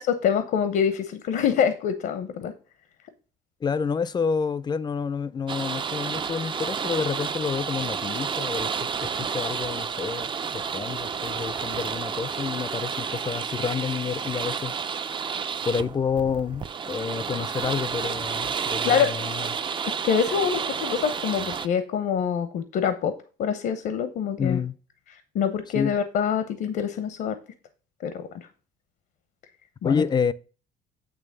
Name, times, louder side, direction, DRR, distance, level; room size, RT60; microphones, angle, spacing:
voice 1, 0.1-2.5 18.8-19.1 19.9-24.6 25.3-27.4 28.0-28.5 29.8-30.0, left 7 dB, 65° left, 0.9 m, -25 dB
voice 2, 3.6-8.7 9.0-14.7 15.7-19.5 24.4-24.8 25.7-25.9 29.8-30.3, left 6 dB, 25° left, 0.5 m, -29 dB
sound 1, 5.5-21.7, right 6 dB, 30° right, 0.5 m, -30 dB
9.0 x 3.2 x 6.5 m
cardioid pair, 110°, 17 cm